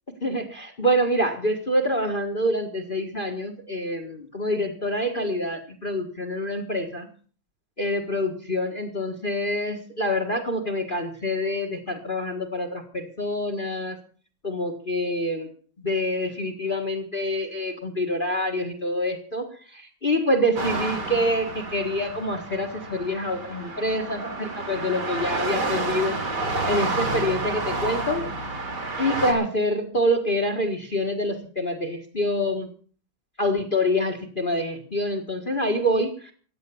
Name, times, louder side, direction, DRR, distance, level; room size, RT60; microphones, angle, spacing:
voice 1, 0.2-7.1 7.8-14.0 14.4-15.5 15.8-26.2 26.7-28.3 29.0-32.7 33.4-36.3, equal, 25° left, 4 dB, 1.6 m, -26 dB
sound 1, 20.6-29.3, right 2 dB, 55° right, 3.6 m, -30 dB
15.5 x 9.6 x 7.0 m, 0.43 s
omnidirectional pair, 2.1 m